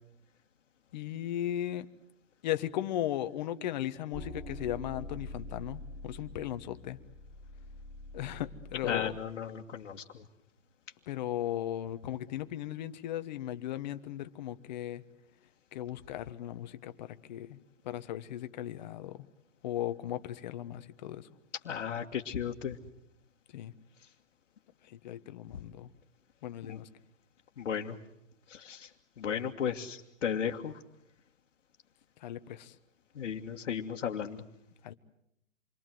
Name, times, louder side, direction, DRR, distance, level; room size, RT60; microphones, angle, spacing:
voice 1, 0.9-1.9 2.4-7.0 8.1-9.2 11.1-15.0 15.7-17.6 17.8-19.2 19.6-21.2 23.5-23.7 25.0-25.9 26.4-26.9 32.2-32.7 34.8-34.9, left 12 dB, 35° left, 10 dB, 1.3 m, -36 dB
sound 1, 4.1-9.2, left 1 dB, 5° right, 4.1 m, -45 dB
voice 2, 8.8-10.2 21.7-22.8 26.6-26.8 27.6-28.0 28.5-28.9 29.2-30.7 33.2-34.4, left 8 dB, 60° left, -2 dB, 1.9 m, -35 dB
28.0 x 23.0 x 7.8 m, 0.81 s
hypercardioid pair, 155°, 39 cm